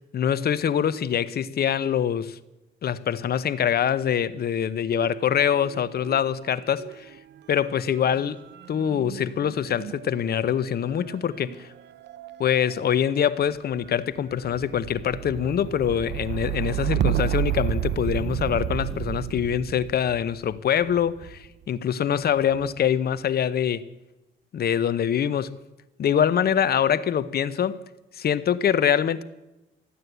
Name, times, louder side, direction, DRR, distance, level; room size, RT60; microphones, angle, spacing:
voice 1, 0.1-2.4 2.8-7.1 7.5-8.4 8.7-11.7 12.4-23.9 24.5-25.6 26.0-27.8 28.2-29.2, left 9 dB, 55° left, 0.8 m, -24 dB
sound 1, 4.9-6.2 6.5-21.5 22.3-22.9, right 12 dB, 60° right, 0.6 m, -32 dB
14.0 x 9.5 x 8.1 m
cardioid pair, 90°, 20 cm